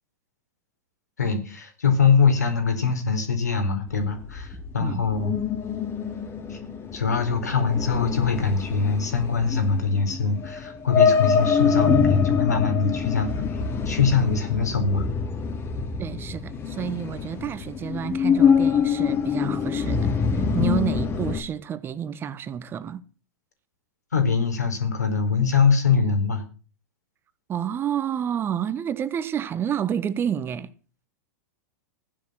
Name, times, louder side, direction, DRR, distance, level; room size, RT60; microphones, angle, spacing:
voice 1, 1.2-5.4 6.5-6.6 6.9-15.1 20.6-20.7 24.1-26.5, left 5 dB, 80° left, 4.4 m, -23 dB
sound 1, 3.9-21.4, left 6 dB, 25° left, 2.9 m, -25 dB
voice 2, 16.0-20.1 20.3-23.0 27.5-30.7, right 9 dB, 25° right, 1.2 m, -29 dB
15.5 x 10.5 x 6.4 m
figure-of-eight pair, 100°, 9 cm